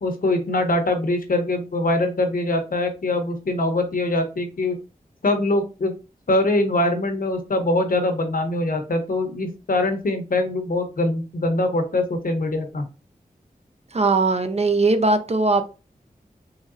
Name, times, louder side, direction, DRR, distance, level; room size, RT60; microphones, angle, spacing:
voice 1, 0.0-4.8 5.2-5.9 6.3-12.8, left 2 dB, 65° left, 0.8 m, -23 dB
voice 2, 13.9-15.6, right 3 dB, 45° right, 0.5 m, -19 dB
3.9 x 3.1 x 2.5 m
wide cardioid pair, 70°, 15 cm